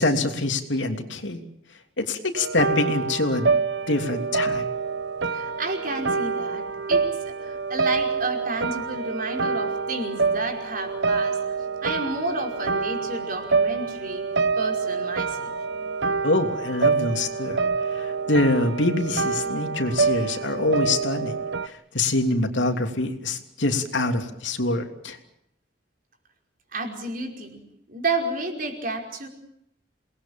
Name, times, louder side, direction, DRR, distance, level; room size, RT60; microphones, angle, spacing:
voice 1, 0.0-1.4 2.0-3.5 3.9-4.7 16.2-17.6 17.9-21.4 21.6-25.2, left 2 dB, 90° left, 5 dB, 3.1 m, -25 dB
sound 1, 2.4-21.7, right 4 dB, 80° right, 0.9 m, -26 dB
voice 2, 5.3-11.4 11.8-14.3 14.6-15.6 26.7-27.6 27.9-29.3, right 2 dB, 50° right, 3 dB, 5.3 m, -31 dB
28.0 x 20.5 x 7.3 m, 0.75 s
head